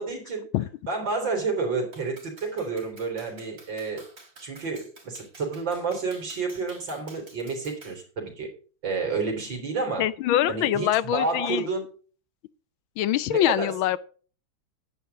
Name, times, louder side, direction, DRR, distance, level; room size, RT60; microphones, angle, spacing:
voice 1, 0.0-0.4 0.9-4.0 4.4-8.5 8.8-10.0 10.5-11.8 13.3-13.7, right 4 dB, 60° right, 4.3 m, -30 dB
Clapping, 1.9-8.0, right 2 dB, 45° right, 3.6 m, -51 dB
voice 2, 10.0-11.7 13.0-14.0, left 12 dB, 80° left, 1.4 m, -24 dB
10.5 x 9.3 x 4.0 m
omnidirectional pair, 2.2 m